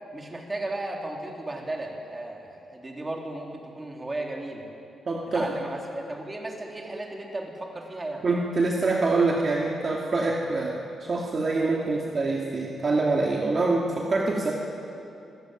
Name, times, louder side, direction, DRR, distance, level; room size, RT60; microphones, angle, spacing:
voice 1, 0.1-4.6 5.3-8.3, right 2 dB, 20° right, 1 dB, 3.7 m, -35 dB
voice 2, 5.1-5.5 8.2-14.5, right 3 dB, 40° right, -1 dB, 2.5 m, -25 dB
26.5 x 16.5 x 9.3 m, 2.7 s
cardioid pair, 110°, 0 cm